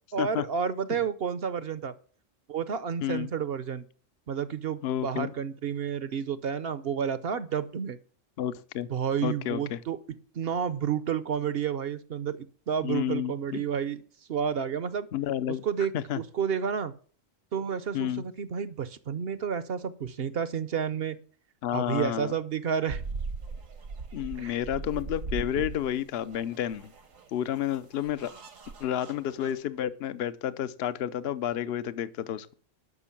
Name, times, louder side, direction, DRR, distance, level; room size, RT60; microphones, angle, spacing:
voice 1, 0.1-1.9 2.5-3.8 4.3-8.0 8.9-10.0 10.3-14.0 14.3-15.1 15.5-16.9 17.5-21.2 21.7-23.0 24.4-24.6 25.6-25.7, right 7 dB, 55° right, 15 dB, 0.9 m, -30 dB
voice 2, 4.8-5.3 8.4-8.9 9.2-9.8 12.8-13.6 15.1-15.6 15.9-16.2 17.9-18.2 21.6-22.3 24.1-26.9 27.3-28.3 28.8-32.6, left 11 dB, 55° left, 14 dB, 0.9 m, -30 dB
sound 1, 22.9-29.6, right 4 dB, 80° right, 1.8 m, -39 dB
12.0 x 6.1 x 7.2 m, 0.43 s
omnidirectional pair, 1.3 m